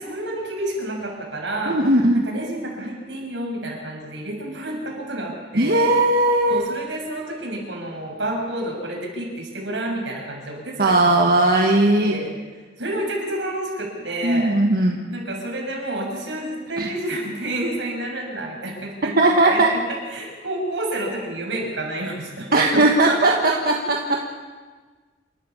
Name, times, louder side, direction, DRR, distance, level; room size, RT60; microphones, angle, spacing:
voice 1, 0.0-1.8 2.1-5.8 6.5-11.0 11.9-12.3 12.8-19.1 19.4-22.8 23.1-23.8 24.1-24.2, right 1 dB, 85° right, -1 dB, 6.5 m, -29 dB
voice 2, 1.7-2.2 5.5-6.7 10.8-12.1 14.2-15.0 16.8-16.9 19.2-19.7 22.5-24.2, right 2 dB, 55° right, 1 dB, 1.5 m, -18 dB
28.0 x 13.0 x 7.2 m, 1.4 s
head